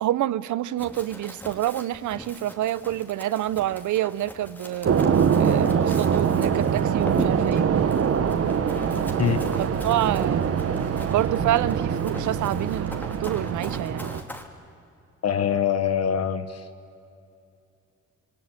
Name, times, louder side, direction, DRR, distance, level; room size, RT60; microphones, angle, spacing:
voice 1, 0.0-4.9 5.4-7.7 9.8-10.6 11.1-14.1, right 13 dB, 75° right, 0.9 m, -27 dB
Run, 0.8-14.4, equal, 5° left, 3.3 m, -42 dB
sound 1, 4.8-14.2, right 7 dB, 50° right, 1.6 m, -23 dB
voice 2, 15.2-16.7, left 8 dB, 55° left, 1.4 m, -24 dB
27.0 x 23.5 x 9.1 m
cardioid pair, 90°, 30 cm